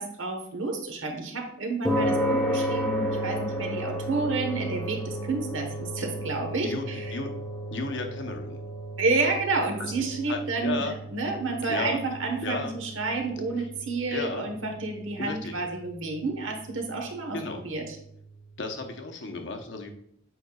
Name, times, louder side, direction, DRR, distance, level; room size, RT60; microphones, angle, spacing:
voice 1, 0.0-7.2 9.0-18.0, right 3 dB, 75° right, 4 dB, 1.2 m, -30 dB
sound 1, 1.8-18.4, equal, ahead, 1.0 m, -34 dB
voice 2, 6.5-7.3 7.7-8.6 9.8-9.9 10.3-10.9 11.7-12.0 12.4-12.8 13.6-13.7 14.1-14.5 15.2-15.5 17.3-17.6 18.6-19.9, left 3 dB, 65° left, 4 dB, 0.9 m, -34 dB
7.7 x 5.1 x 2.4 m, 0.73 s
head